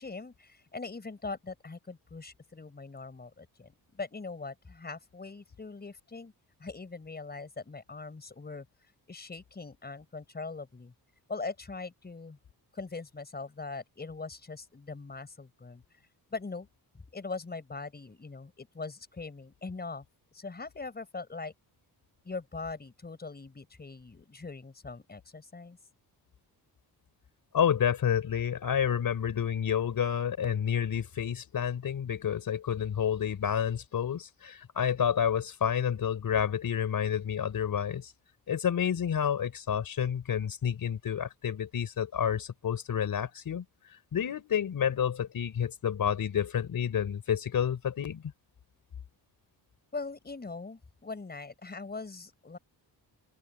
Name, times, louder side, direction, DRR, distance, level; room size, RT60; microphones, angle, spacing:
voice 1, 0.0-6.3 6.6-8.7 9.1-10.9 11.3-12.4 12.7-15.8 16.3-16.7 16.9-20.0 20.3-21.5 22.3-25.8 49.9-52.6, left 3 dB, 25° left, 5.1 m, -41 dB
voice 2, 27.5-38.1 38.5-43.6 44.1-48.2, left 8 dB, 55° left, 4.3 m, -29 dB
open air
cardioid pair, 130°, 40 cm